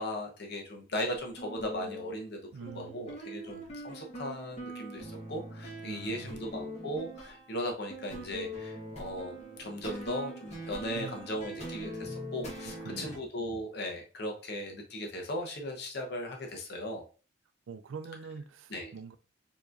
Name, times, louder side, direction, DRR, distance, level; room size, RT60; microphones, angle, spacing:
voice 1, 0.0-17.0 18.7-18.9, equal, 55° left, 0.9 m, -37 dB
sound 1, 1.2-13.2, equal, 35° left, 1.3 m, -43 dB
voice 2, 2.5-3.1 5.8-6.4 10.9-11.2 12.6-13.2 17.7-19.2, right 5 dB, 85° right, 0.4 m, -44 dB
4.7 x 3.0 x 2.5 m
head